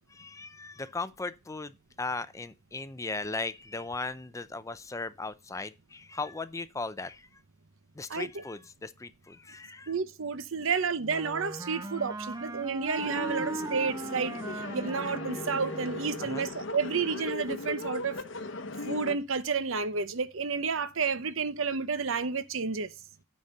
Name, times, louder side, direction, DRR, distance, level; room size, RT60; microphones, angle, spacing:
voice 1, 0.1-7.3 8.0-9.9 11.7-11.8 16.2-16.5, left 3 dB, 15° left, 0.4 m, -37 dB
voice 2, 8.1-8.4 9.9-14.3 14.7-18.1 18.9-22.9, right 5 dB, 70° right, 0.8 m, -31 dB
Wind instrument woodwind instrument, 11.0-16.4, right 2 dB, 15° right, 0.7 m, -39 dB
sound 1, 13.0-19.1, left 3 dB, 60° left, 0.8 m, -38 dB
9.5 x 4.2 x 6.5 m
head